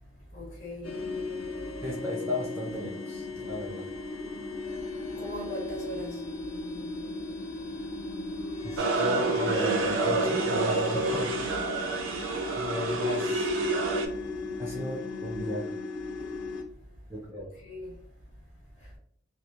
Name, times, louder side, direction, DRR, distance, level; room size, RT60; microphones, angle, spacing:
voice 1, 0.3-1.0 5.2-6.2 17.5-18.0, equal, 35° left, 1.0 m, -39 dB
sound 1, 0.8-16.6, left 3 dB, 80° left, 0.5 m, -37 dB
voice 2, 1.8-3.9 8.6-11.3 12.5-13.6 14.6-15.7 17.1-17.5, left 1 dB, 10° right, 0.4 m, -35 dB
sound 2, 8.8-14.1, right 3 dB, 70° right, 0.5 m, -28 dB
2.9 x 2.3 x 2.4 m
head